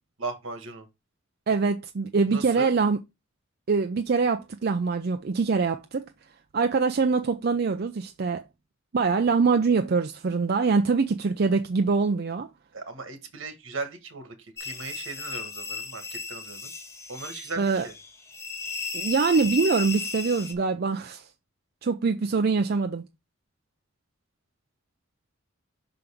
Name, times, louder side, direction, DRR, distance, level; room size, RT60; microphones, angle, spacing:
voice 1, 0.2-0.9 2.3-2.7 12.7-16.8 17.1-17.9, right 4 dB, 75° right, 1.5 m, -37 dB
voice 2, 1.5-3.0 3.7-6.0 6.5-8.4 8.9-12.5 17.6-17.9 18.9-21.3 21.8-23.0, right 4 dB, 50° right, 0.4 m, -24 dB
sound 1, 14.6-20.5, left 5 dB, 15° left, 0.8 m, -35 dB
5.8 x 5.2 x 3.4 m
head